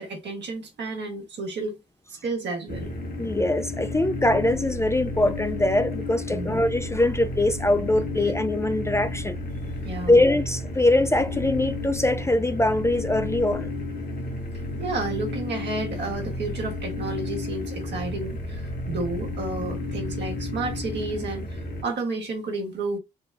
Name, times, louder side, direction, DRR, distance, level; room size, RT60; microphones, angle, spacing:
voice 1, 0.0-1.8 2.1-2.9 6.3-6.6 9.8-10.2 14.8-23.0, right 3 dB, 65° right, 1.4 m, -31 dB
sound 1, 2.7-21.8, left 2 dB, 50° left, 1.5 m, -32 dB
voice 2, 3.2-9.4 10.1-13.7, left 1 dB, 15° left, 0.4 m, -22 dB
3.8 x 2.3 x 3.4 m
hypercardioid pair, 45°, 19 cm